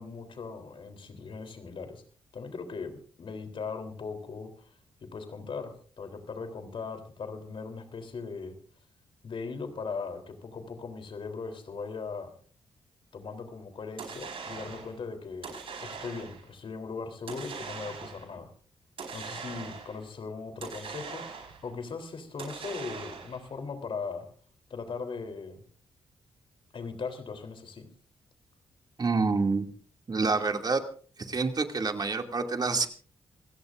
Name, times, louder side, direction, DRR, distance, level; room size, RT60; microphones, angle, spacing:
voice 1, 0.0-2.0 2.3-4.7 5.0-8.6 9.2-12.3 13.1-18.5 19.1-24.3 24.7-25.6 26.7-27.9, left 4 dB, 55° left, 7 dB, 3.6 m, -39 dB
sound 1, 14.0-15.0 15.4-16.5 17.3-18.3 19.0-20.0 20.6-21.7 22.4-23.5, right 5 dB, 65° right, 4.9 m, -41 dB
voice 2, 29.0-29.7 30.1-30.8 31.2-32.9, right 4 dB, 40° right, 5 dB, 2.5 m, -27 dB
27.5 x 16.5 x 2.6 m, 0.44 s
supercardioid pair, 50°, 10 cm